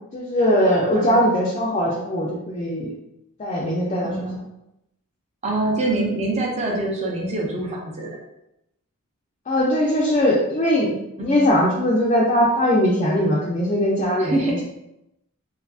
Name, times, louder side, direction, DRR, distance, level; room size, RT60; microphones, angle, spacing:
voice 1, 0.1-2.9 3.4-4.1 9.5-14.6, equal, 30° left, -5 dB, 0.4 m, -20 dB
voice 2, 0.9-1.3 4.0-4.4 5.4-8.2 11.2-11.4 14.2-14.6, right 2 dB, 30° right, -1 dB, 0.5 m, -25 dB
2.6 x 2.4 x 2.3 m, 0.85 s
head